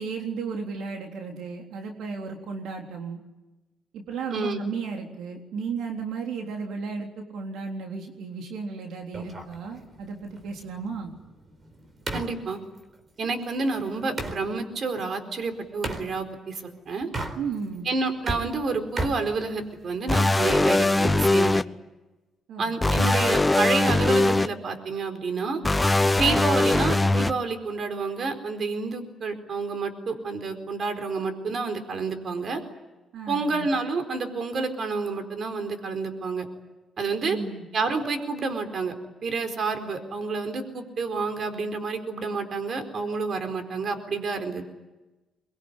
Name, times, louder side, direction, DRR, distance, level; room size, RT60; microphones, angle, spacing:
voice 1, 0.0-3.2 3.9-11.1 17.4-17.9 22.5-22.7 33.1-33.7 37.2-37.7, right 5 dB, 80° right, 2 dB, 3.5 m, -34 dB
voice 2, 4.3-4.7 12.1-12.6 13.2-17.1 17.8-21.6 22.6-25.6 26.1-32.6 33.3-36.5 37.0-37.4 37.7-38.9 39.2-44.7, right 4 dB, 50° right, 7 dB, 4.3 m, -29 dB
sound 1, 9.1-14.4 15.8-16.1 17.0-17.8 18.1-20.0, right 2 dB, 35° right, 4.3 m, -36 dB
sound 2, 20.1-21.6 22.8-24.5 25.6-27.3, left 2 dB, 15° left, 0.8 m, -21 dB
23.5 x 23.0 x 9.9 m, 1.1 s
cardioid pair, 90°, 0 cm